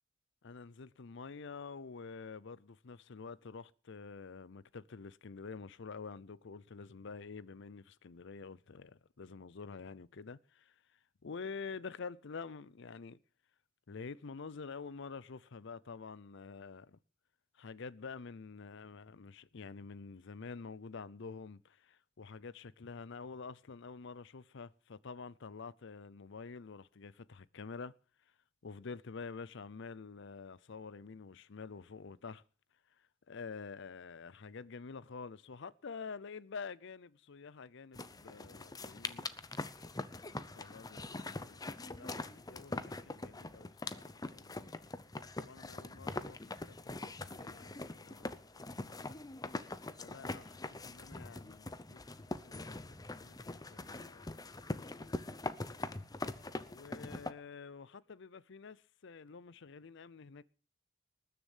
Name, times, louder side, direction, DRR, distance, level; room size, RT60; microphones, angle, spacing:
voice 1, 0.4-13.2 13.9-17.0 17.5-27.9 28.6-32.4 33.3-39.3 40.2-44.7 45.2-48.3 48.7-49.2 50.0-52.0 52.4-52.9 53.2-54.4 55.0-55.8 56.7-60.4, left 5 dB, 60° left, 0.6 m, -48 dB
sound 1, 38.0-57.3, left 2 dB, 20° left, 0.7 m, -43 dB
19.5 x 6.9 x 7.2 m
head